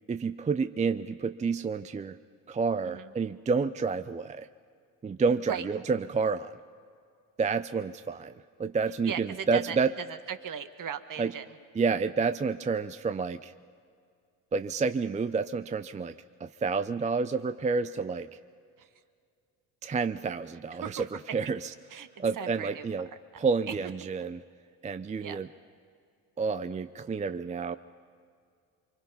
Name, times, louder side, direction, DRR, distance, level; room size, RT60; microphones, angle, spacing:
voice 1, 0.1-2.2 2.5-4.5 5.0-6.5 7.4-8.3 8.6-9.9 11.2-11.3 11.7-13.5 14.5-16.1 16.4-18.4 19.8-21.7 22.2-23.1 23.4-24.4 24.8-25.5 26.4-27.8, right 5 dB, 15° right, 11 dB, 0.5 m, -29 dB
voice 2, 9.1-9.8 10.1-11.4 20.8-21.0 21.9-22.1 22.4-22.9 25.2-25.4, right 8 dB, 45° right, 10 dB, 1.4 m, -37 dB
24.5 x 24.0 x 5.5 m, 2.3 s
hypercardioid pair, 65°, 43 cm